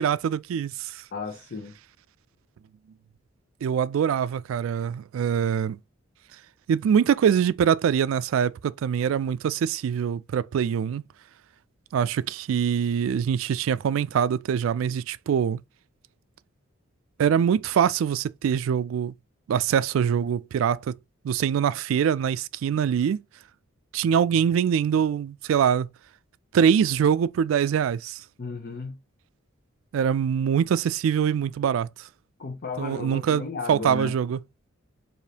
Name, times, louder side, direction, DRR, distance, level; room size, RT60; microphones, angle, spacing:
voice 1, 0.0-1.0 3.6-5.8 6.7-11.0 11.9-15.6 17.2-19.1 19.5-20.9 21.2-23.2 23.9-25.9 26.5-28.2 29.9-32.1 32.8-34.4, right 8 dB, 85° right, 0.3 m, -24 dB
voice 2, 1.1-1.8 28.4-29.0 32.4-34.1, left 4 dB, 50° left, 0.6 m, -34 dB
4.9 x 2.6 x 2.8 m
head